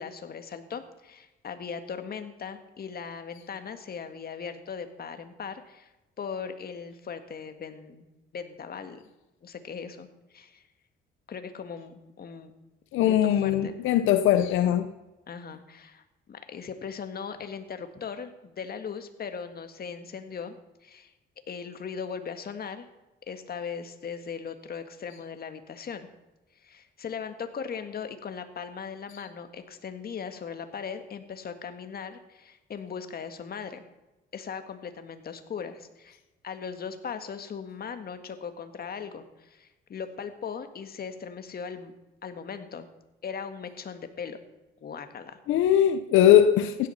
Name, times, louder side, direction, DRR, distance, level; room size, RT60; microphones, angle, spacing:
voice 1, 0.0-5.9 6.2-8.1 8.3-9.0 9.4-10.1 10.3-10.6 11.3-12.5 13.0-13.8 15.3-16.0 16.3-20.6 20.8-21.1 21.5-22.9 23.3-26.1 26.5-33.8 34.3-41.9 42.2-42.9 43.2-44.4 44.8-45.4, left 6 dB, 50° left, 1.7 m, -38 dB
voice 2, 12.9-14.9 45.5-46.9, left 10 dB, 90° left, 0.8 m, -20 dB
16.0 x 11.0 x 5.7 m
cardioid pair, 90°, 20 cm